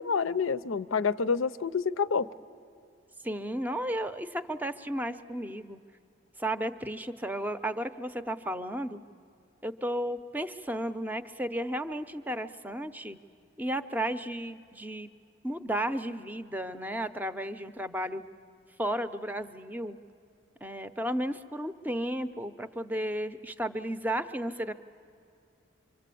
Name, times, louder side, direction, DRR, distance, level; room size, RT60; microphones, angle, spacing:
voice 1, 0.0-2.3, left 5 dB, 80° left, 15 dB, 0.6 m, -28 dB
voice 2, 3.2-5.8 6.4-9.0 9.6-13.2 13.6-15.1 15.4-18.2 18.8-20.0 20.6-24.7, right 1 dB, 10° right, 11 dB, 0.6 m, -33 dB
25.5 x 25.0 x 8.4 m, 2.6 s
head